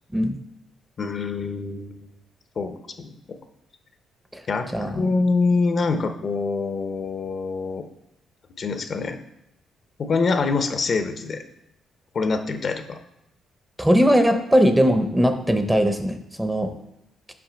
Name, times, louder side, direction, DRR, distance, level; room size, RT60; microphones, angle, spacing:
voice 1, 1.0-2.1 2.6-3.2 4.5-4.7 4.9-7.9 8.6-9.2 10.0-11.4 12.1-13.0 14.3-14.4, left 4 dB, 50° left, 7 dB, 0.7 m, -25 dB
voice 2, 13.8-16.7, equal, 5° right, 8 dB, 0.7 m, -20 dB
6.0 x 5.1 x 5.1 m, 0.82 s
cardioid pair, 90°, 0 cm